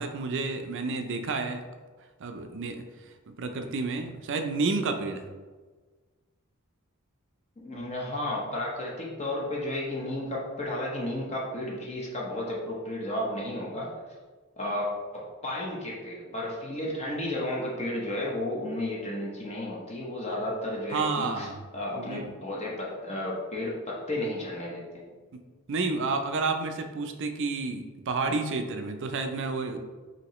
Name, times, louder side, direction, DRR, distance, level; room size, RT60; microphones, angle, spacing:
voice 1, 0.0-1.6 2.2-2.8 3.3-5.2 20.9-21.6 22.0-22.3 25.3-25.4 25.7-29.8, right 3 dB, 60° right, 7 dB, 0.4 m, -30 dB
voice 2, 7.6-13.9 14.6-14.9 15.1-21.5 21.7-25.1, left 1 dB, 30° left, -4 dB, 0.8 m, -33 dB
5.9 x 2.8 x 3.0 m, 1.4 s
head